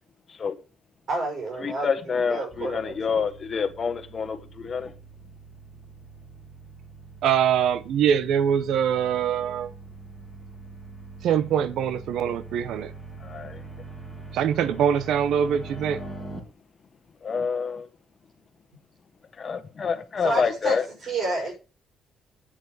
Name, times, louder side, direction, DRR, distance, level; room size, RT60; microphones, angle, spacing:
voice 1, 1.1-1.9 2.3-3.3 20.2-20.7 21.0-21.5, right 2 dB, 50° right, 5.7 m, -29 dB
voice 2, 1.6-4.9 13.2-13.6 17.2-17.9 19.3-20.8, left 5 dB, 35° left, 1.5 m, -27 dB
sound 1, 2.5-16.4, right 3 dB, 5° right, 3.3 m, -43 dB
voice 3, 7.2-9.7 11.2-12.9 14.3-16.0, right 8 dB, 80° right, 0.9 m, -23 dB
9.1 x 6.7 x 6.4 m
cardioid pair, 150°, 0 cm